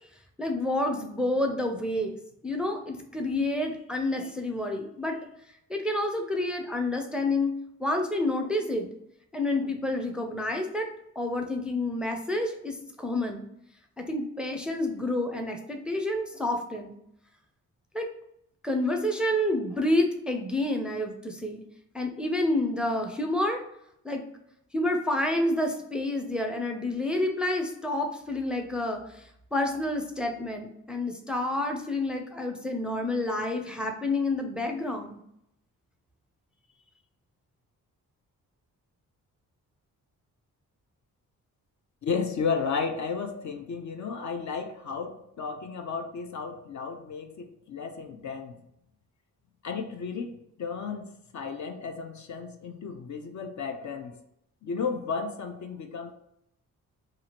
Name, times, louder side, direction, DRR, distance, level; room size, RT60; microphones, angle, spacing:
voice 1, 0.4-2.2 2.4-5.2 5.7-7.5 7.8-8.9 9.3-10.9 11.2-13.5 14.0-16.9 17.9-18.1 18.6-21.6 21.9-23.6 24.0-24.3 24.7-29.2 29.5-35.2, left 1 dB, 5° right, 3 dB, 0.4 m, -29 dB
voice 2, 42.0-48.6 49.6-54.2 54.6-56.1, left 5 dB, 50° left, 6 dB, 0.5 m, -33 dB
2.8 x 2.5 x 2.8 m, 0.77 s
supercardioid pair, 55°, 36 cm